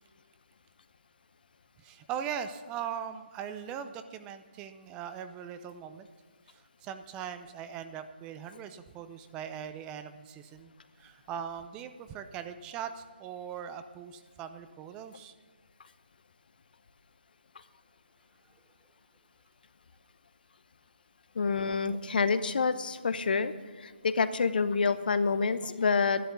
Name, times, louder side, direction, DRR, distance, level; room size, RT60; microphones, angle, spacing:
voice 1, 1.8-6.1 6.5-10.7 11.0-15.3, right 8 dB, 15° right, 10 dB, 0.6 m, -40 dB
voice 2, 21.3-26.3, left 4 dB, 55° left, 13 dB, 0.9 m, -28 dB
12.5 x 12.0 x 6.9 m, 1.4 s
figure-of-eight pair, 150°, 6 cm